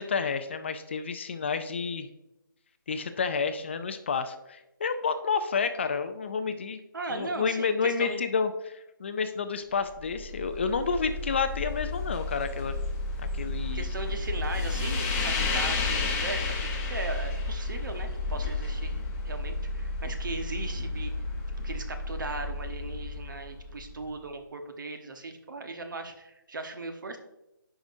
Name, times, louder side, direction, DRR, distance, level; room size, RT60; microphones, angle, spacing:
voice 1, 0.0-2.1 2.9-6.8 7.1-12.8 13.2-13.8, left 5 dB, 30° left, 10 dB, 0.4 m, -30 dB
voice 2, 6.9-8.2 13.7-21.1 21.6-27.2, right 2 dB, 65° right, 6 dB, 1.1 m, -38 dB
sound 1, 9.9-24.0, left 3 dB, 15° left, 0.9 m, -32 dB
10.0 x 4.9 x 2.6 m, 0.91 s
hypercardioid pair, 160°, 12 cm